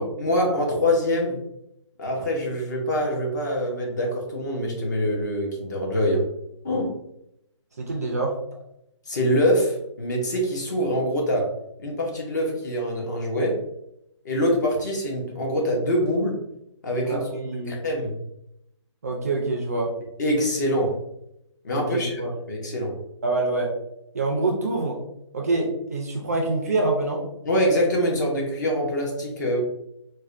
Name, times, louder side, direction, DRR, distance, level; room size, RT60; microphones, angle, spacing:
voice 1, 0.2-1.4 2.0-6.3 6.6-6.9 9.1-11.5 11.8-13.6 14.2-16.4 16.8-17.2 17.7-18.2 20.2-21.0 21.6-22.2 22.5-23.0 27.4-29.6, equal, 35° left, -1 dB, 0.7 m, -24 dB
voice 2, 7.8-8.3 17.0-17.8 19.0-19.9 21.7-22.3 23.2-23.7 24.1-25.0 25.3-27.2, right 2 dB, 30° right, 0 dB, 0.4 m, -26 dB
4.1 x 2.1 x 2.4 m, 0.81 s
hypercardioid pair, 170°, 16 cm